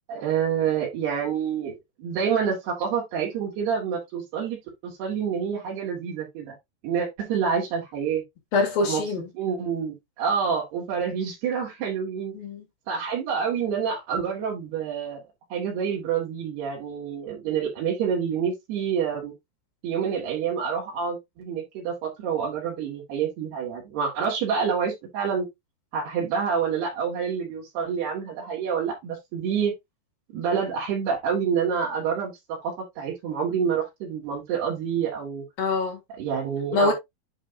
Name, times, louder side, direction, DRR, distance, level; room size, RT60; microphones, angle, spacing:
voice 1, 0.1-6.5 6.8-8.2 8.8-9.0 9.4-12.3 12.9-15.2 15.5-19.3 19.8-25.5 25.9-29.7 30.3-35.4 36.2-36.9, right 7 dB, 80° right, 4.3 m, -27 dB
voice 2, 8.5-9.3 12.3-12.6 35.6-36.0 36.7-36.9, left 3 dB, 65° left, 4.9 m, -24 dB
9.9 x 3.6 x 3.8 m
omnidirectional pair, 4.6 m